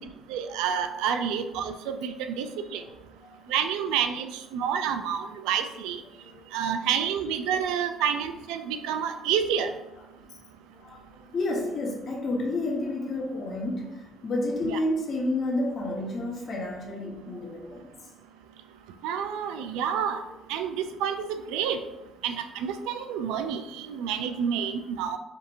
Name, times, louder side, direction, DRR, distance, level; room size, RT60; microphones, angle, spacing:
voice 1, 0.3-2.8 3.5-4.3 4.5-6.0 6.5-9.7 14.6-14.8 19.0-20.2 20.5-20.7 21.0-21.2 21.5-21.8 22.2-25.2, right 8 dB, 85° right, 8 dB, 0.3 m, -28 dB
voice 2, 6.2-6.6 10.2-10.4 10.8-11.0 11.3-17.9, left 2 dB, 50° left, -1 dB, 1.1 m, -30 dB
5.1 x 2.8 x 2.6 m, 0.97 s
supercardioid pair, 80°, 0 cm